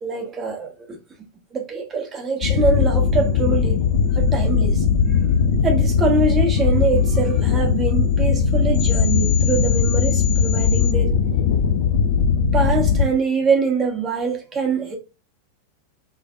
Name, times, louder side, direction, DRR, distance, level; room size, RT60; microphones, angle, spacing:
voice 1, 0.0-1.0 1.5-3.8 4.1-4.8 5.6-11.2 12.5-15.0, right 4 dB, 25° right, 1.5 m, -24 dB
sound 1, 2.4-13.1, left 6 dB, 55° left, 0.7 m, -19 dB
5.9 x 3.3 x 2.5 m
figure-of-eight pair, 90°, 0 cm